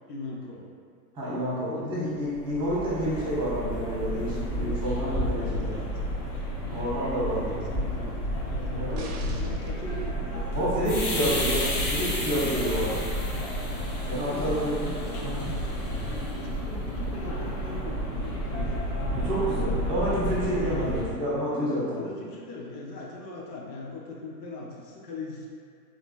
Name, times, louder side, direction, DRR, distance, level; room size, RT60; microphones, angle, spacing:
voice 1, 0.1-0.7 1.7-2.1 2.7-2.8 5.1-5.9 6.7-10.7 11.3-12.0 14.0-15.3 16.1-18.8 20.8-20.9 21.9-25.5, left 2 dB, 80° left, -2 dB, 0.9 m, -40 dB
voice 2, 1.1-5.7 6.7-7.5 8.7-9.0 10.5-13.0 14.1-14.9 15.2-15.4 19.1-22.0, equal, 10° right, -9 dB, 1.1 m, -29 dB
sound 1, 2.3-21.0, equal, 60° left, 1.2 m, -31 dB
sound 2, 8.9-9.8 11.3-11.4, right 4 dB, 60° right, 0.6 m, -43 dB
3.5 x 3.2 x 2.4 m, 2.2 s
hypercardioid pair, 140°, 49 cm